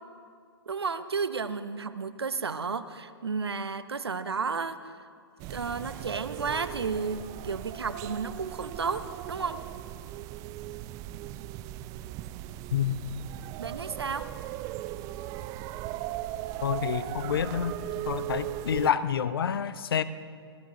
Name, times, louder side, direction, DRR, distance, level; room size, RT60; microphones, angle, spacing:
voice 1, 0.7-5.0 5.5-9.6 13.6-14.3, right 5 dB, 80° right, 12 dB, 0.8 m, -32 dB
sound 1, 5.4-18.9, right 14 dB, 25° right, 0.4 m, -38 dB
voice 2, 16.6-17.7 18.1-20.0, left 8 dB, 65° left, 14 dB, 0.7 m, -28 dB
25.5 x 17.0 x 2.9 m, 2.2 s
figure-of-eight pair, 115°, 13 cm